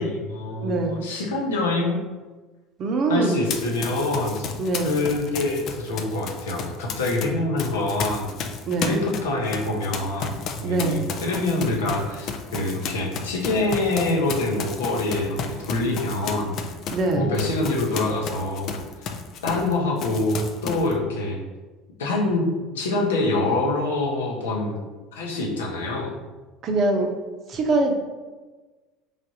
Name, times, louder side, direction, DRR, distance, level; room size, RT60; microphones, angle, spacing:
voice 1, 0.0-2.0 3.1-4.4 4.8-8.3 8.8-16.5 17.1-19.1 19.4-21.4 22.0-22.5 22.7-24.8 25.1-26.1, left 2 dB, 75° left, -2 dB, 0.7 m, -25 dB
voice 2, 0.6-0.9 2.8-3.4 4.6-4.9 8.7-9.0 10.6-11.0 16.9-17.3 26.6-27.1 27.5-27.9, right 3 dB, 45° right, 3 dB, 0.6 m, -23 dB
Run, 3.5-7.3 7.6-19.7 20.0-20.9, left 6 dB, 50° left, 0.4 m, -33 dB
3.3 x 2.5 x 4.1 m, 1.3 s
figure-of-eight pair, 70°, 0 cm